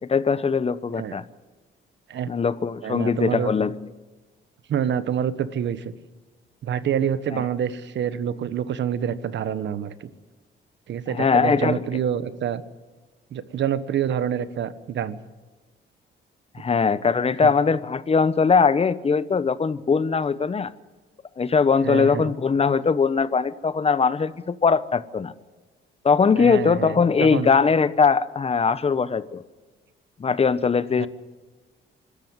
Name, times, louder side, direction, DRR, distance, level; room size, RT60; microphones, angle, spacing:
voice 1, 0.0-1.2 2.3-3.7 7.3-7.5 11.1-11.8 16.5-20.7 21.4-25.3 26.0-29.4 30.2-31.1, left 5 dB, 30° left, 16 dB, 1.0 m, -21 dB
voice 2, 2.8-3.5 4.7-5.9 6.6-10.1 10.9-12.6 13.3-15.2 17.4-17.5 21.8-22.3 26.4-27.5 31.0-31.1, right 9 dB, 65° right, 14 dB, 1.3 m, -27 dB
25.0 x 13.5 x 9.6 m, 1.3 s
cardioid pair, 90°, 20 cm